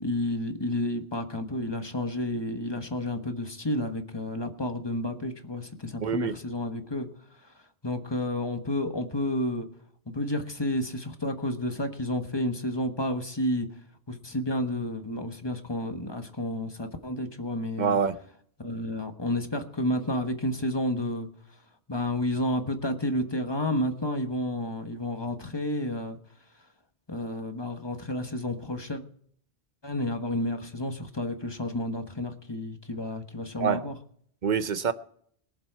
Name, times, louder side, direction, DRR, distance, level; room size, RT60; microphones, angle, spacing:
voice 1, 0.0-7.1 7.8-9.7 10.1-13.7 14.1-18.0 18.6-21.3 21.9-26.2 27.1-29.0 29.8-33.9, left 1 dB, 25° left, 1.3 m, -30 dB
voice 2, 6.0-6.4 17.8-18.2 33.6-33.8 34.4-34.9, right 6 dB, 50° right, 0.8 m, -25 dB
22.0 x 7.4 x 4.7 m
omnidirectional pair, 1.1 m